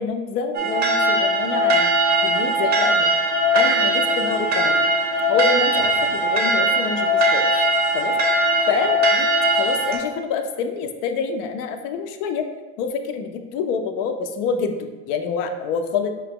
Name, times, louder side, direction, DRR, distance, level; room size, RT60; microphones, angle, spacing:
voice 1, 0.0-2.0 2.2-3.1 3.5-4.8 5.3-7.4 7.9-8.1 8.7-9.3 9.6-12.5 12.8-14.7 15.1-16.1, left 5 dB, 65° left, 6 dB, 0.5 m, -26 dB
sound 1, 0.5-10.0, right 1 dB, 30° right, 0.5 m, -20 dB
4.6 x 2.9 x 3.5 m, 1.3 s
cardioid pair, 180°, 35 cm